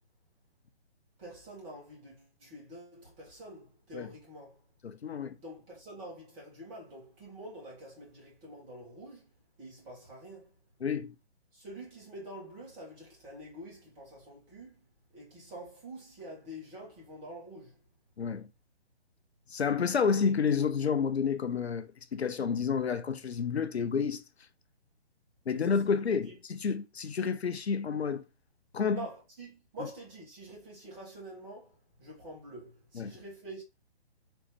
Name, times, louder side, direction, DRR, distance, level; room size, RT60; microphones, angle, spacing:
voice 1, 1.2-4.6 5.4-9.3 9.6-10.6 11.5-14.8 15.1-17.8 25.5-25.8 26.3-26.4 28.9-33.6, right 1 dB, 20° right, 1.7 m, -47 dB
voice 2, 4.8-5.4 10.8-11.1 18.2-18.5 19.5-24.2 25.5-28.2 28.7-29.0 33.0-33.1, left 6 dB, 75° left, 0.6 m, -30 dB
4.2 x 3.1 x 3.1 m
figure-of-eight pair, 140°, 33 cm